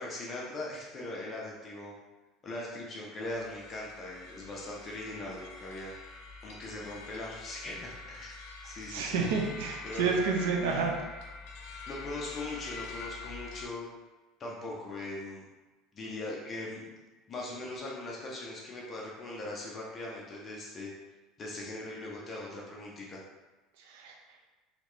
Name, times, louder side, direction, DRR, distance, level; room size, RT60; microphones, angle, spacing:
voice 1, 0.0-1.9 2.4-5.9 6.4-8.3 8.6-9.3 9.8-10.2 10.6-10.9 11.9-13.9 14.4-15.4 15.9-16.9 17.3-20.9 21.4-23.2, left 2 dB, 25° left, -3 dB, 0.7 m, -40 dB
sound 1, 3.2-13.7, left 4 dB, 65° left, 0.7 m, -46 dB
voice 2, 8.9-10.9 23.8-24.1, right 5 dB, 85° right, 1 dB, 0.5 m, -29 dB
3.9 x 3.1 x 3.2 m, 1.2 s
cardioid pair, 160°, 0 cm